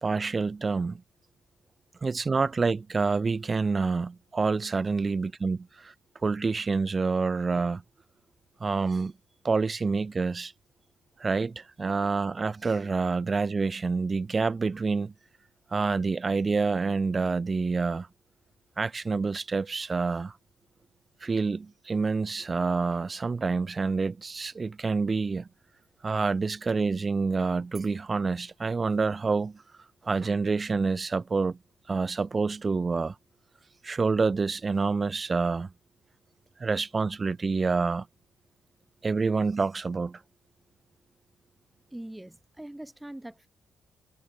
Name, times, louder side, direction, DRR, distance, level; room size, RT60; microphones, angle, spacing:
voice 1, 0.0-1.0 2.0-5.9 6.2-7.8 8.6-9.1 9.4-10.5 11.2-15.1 15.7-18.1 18.8-20.3 21.2-25.5 26.0-29.6 30.0-31.6 31.9-33.1 33.8-35.7 36.6-38.0 39.0-40.2, right 4 dB, 30° right, 1.3 m, -27 dB
voice 2, 41.9-43.5, right 1 dB, 10° right, 4.6 m, -42 dB
cardioid pair, 90°, 0 cm